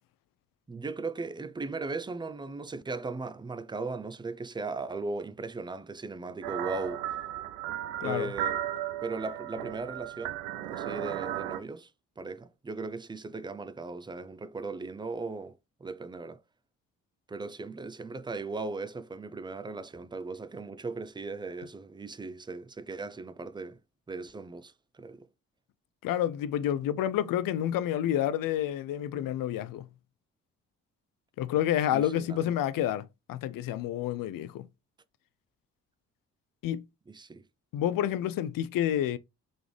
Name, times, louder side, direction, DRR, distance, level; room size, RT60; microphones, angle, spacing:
voice 1, 0.7-7.1 8.0-8.6 9.0-11.9 12.2-15.5 15.8-16.4 17.3-23.8 24.1-25.3 31.9-32.5 37.1-37.5, right 3 dB, 10° right, 0.4 m, -38 dB
sound 1, 6.4-11.6, right 12 dB, 80° right, 0.5 m, -35 dB
voice 2, 8.0-8.3 26.0-29.9 31.4-34.7 36.6-36.8 37.7-39.2, left 11 dB, 60° left, 0.5 m, -29 dB
3.9 x 3.5 x 3.2 m
hypercardioid pair, 40°, 39 cm